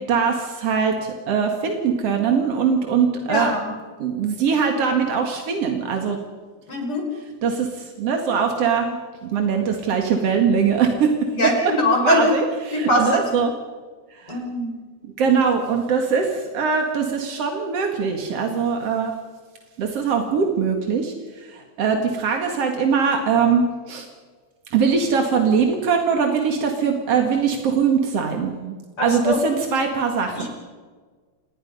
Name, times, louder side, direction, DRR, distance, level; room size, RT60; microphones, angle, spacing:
voice 1, 0.0-3.5 4.0-6.2 7.4-11.1 11.4-11.7 12.0-13.5 14.1-14.4 15.0-19.1 19.8-24.1 24.7-28.8 29.0-30.5, right 6 dB, 50° right, 3 dB, 1.9 m, -22 dB
voice 2, 3.3-3.7 6.7-7.0 11.3-12.3 12.7-13.2 14.3-14.7 29.0-29.4 30.4-30.5, left 1 dB, 30° left, 1 dB, 5.9 m, -21 dB
28.5 x 20.5 x 5.6 m, 1.5 s
omnidirectional pair, 5.5 m